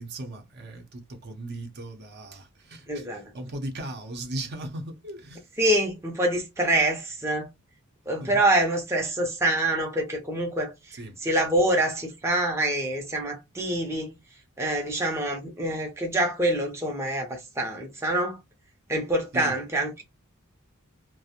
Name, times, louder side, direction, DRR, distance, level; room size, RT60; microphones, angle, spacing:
voice 1, 0.0-5.5 8.2-8.4 10.9-11.2 19.3-19.6, right 1 dB, 50° right, 0.6 m, -37 dB
voice 2, 2.9-3.3 5.6-7.5 8.1-14.1 14.6-18.4 18.9-20.0, right 1 dB, 15° right, 0.6 m, -26 dB
2.4 x 2.0 x 2.7 m
head